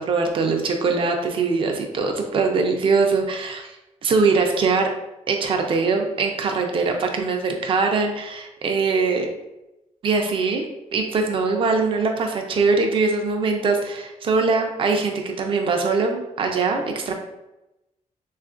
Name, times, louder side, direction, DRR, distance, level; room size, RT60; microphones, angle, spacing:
voice 1, 0.0-3.7 4.0-4.9 5.3-9.3 10.0-10.6 10.9-17.1, right 4 dB, 40° right, 3 dB, 0.4 m, -22 dB
3.5 x 2.4 x 2.4 m, 0.94 s
wide cardioid pair, 150°, 13 cm